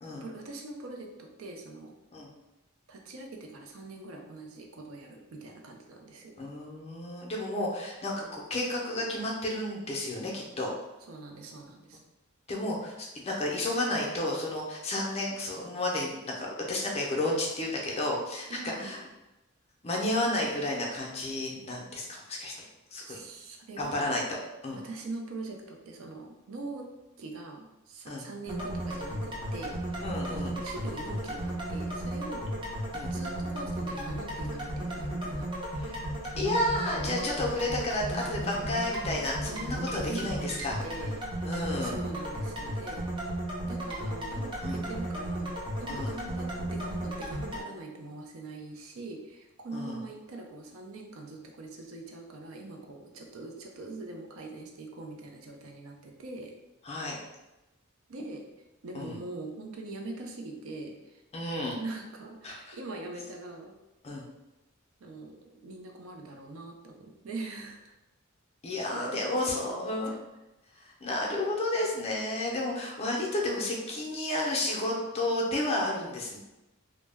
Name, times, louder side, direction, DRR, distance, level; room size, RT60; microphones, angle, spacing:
voice 1, 0.2-1.9 2.9-6.3 11.1-12.0 18.5-18.9 23.0-24.2 24.7-26.9 27.2-30.1 30.4-32.5 33.1-35.5 39.4-41.2 41.8-43.0 43.6-56.5 58.1-58.5 58.8-61.2 61.8-63.7 65.0-67.9 68.9-70.2, right 2 dB, 75° right, 1 dB, 0.4 m, -42 dB
voice 2, 6.4-10.7 12.5-19.0 19.8-22.5 22.9-23.2 23.8-24.2 24.6-24.8 28.1-28.3 30.0-30.6 32.9-33.1 35.7-36.0 36.4-40.8 41.4-42.0 44.6-44.8 45.9-46.1 49.7-50.0 56.8-57.2 58.9-59.2 61.3-61.8 62.4-62.8 64.0-64.2 68.6-70.1 70.8-76.4, left 1 dB, 30° left, -2 dB, 0.5 m, -32 dB
sound 1, 28.5-47.6, right 1 dB, 25° right, 0.5 m, -34 dB
2.2 x 2.0 x 3.3 m, 0.99 s
head